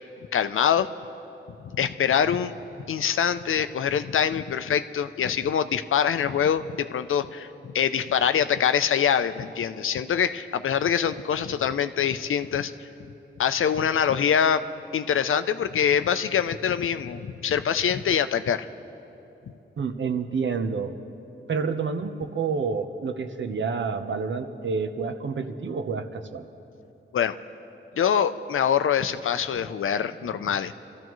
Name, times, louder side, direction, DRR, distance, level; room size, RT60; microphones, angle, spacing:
voice 1, 0.3-0.9 1.6-2.5 2.9-12.9 13.4-14.6 14.9-18.7 27.1-27.4 28.0-30.7, left 8 dB, 75° left, 11 dB, 0.5 m, -24 dB
voice 2, 19.8-21.0 21.5-26.5, right 5 dB, 65° right, 8 dB, 0.8 m, -29 dB
28.0 x 14.0 x 3.1 m, 2.9 s
wide cardioid pair, 125°, 21 cm